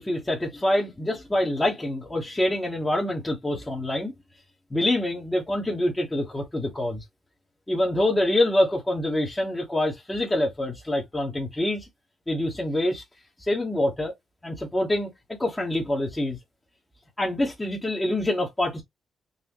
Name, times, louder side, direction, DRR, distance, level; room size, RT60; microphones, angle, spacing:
voice 1, 0.0-4.1 4.7-7.0 7.7-11.9 12.3-13.0 13.4-14.1 14.4-16.4 17.2-18.8, left 1 dB, 20° left, 1.3 m, -26 dB
4.1 x 2.5 x 3.0 m
supercardioid pair, 55°, 0 cm